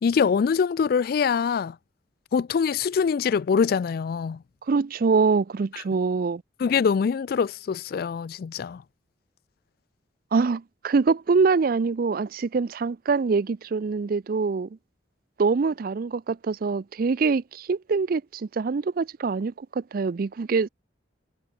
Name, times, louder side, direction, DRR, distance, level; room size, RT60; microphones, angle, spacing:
voice 1, 0.0-1.8 2.3-4.4 5.7-5.8 6.6-8.8, left 6 dB, 55° left, 0.3 m, -24 dB
voice 2, 4.7-6.4 10.3-14.7 15.4-20.7, right 4 dB, 50° right, 0.4 m, -24 dB
head